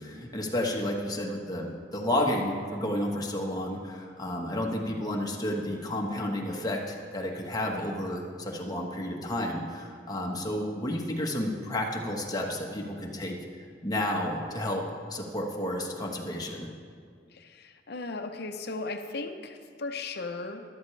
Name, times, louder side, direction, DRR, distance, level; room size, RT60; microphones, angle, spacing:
voice 1, 0.0-13.4 13.8-16.7, left 1 dB, 20° left, 0 dB, 1.2 m, -31 dB
voice 2, 17.3-20.6, left 3 dB, 60° left, 6 dB, 0.7 m, -36 dB
13.5 x 12.0 x 3.3 m, 2.1 s
head